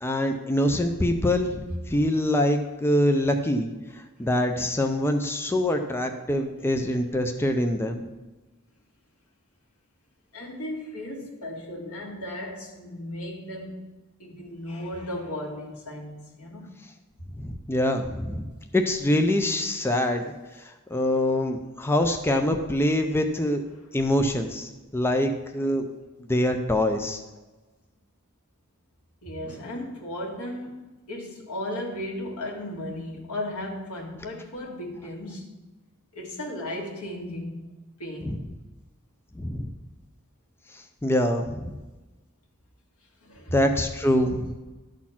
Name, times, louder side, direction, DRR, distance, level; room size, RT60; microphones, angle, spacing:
voice 1, 0.0-8.0 17.4-18.5 18.7-20.2 20.6-23.6 23.9-25.8 26.2-27.2 38.2-38.4 39.4-39.7 40.7-41.8 43.5-44.5, left 1 dB, 10° left, 0.5 m, -25 dB
voice 2, 10.3-13.9 14.2-16.8 29.2-35.5 36.1-37.7 38.0-38.4 43.2-43.6, left 1 dB, 85° left, 1.9 m, -35 dB
11.5 x 4.2 x 5.8 m
head